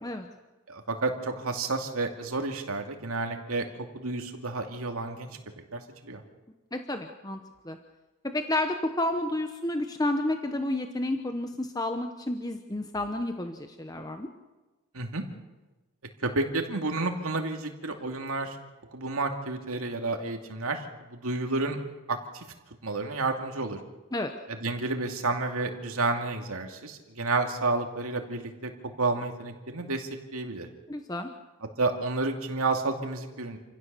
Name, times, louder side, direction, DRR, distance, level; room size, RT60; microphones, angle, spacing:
voice 1, 0.7-3.7 3.9-5.3 5.7-6.2 14.9-15.2 16.2-18.6 18.9-21.8 22.1-22.4 22.8-23.8 24.5-28.7 29.0-30.7 31.8-33.6, right 3 dB, 85° right, 4 dB, 2.5 m, -30 dB
voice 2, 6.7-7.4 7.6-7.8 8.3-14.3 24.1-24.3 30.9-31.3, left 1 dB, 15° left, 6 dB, 1.0 m, -30 dB
28.0 x 16.5 x 6.9 m, 1.1 s
head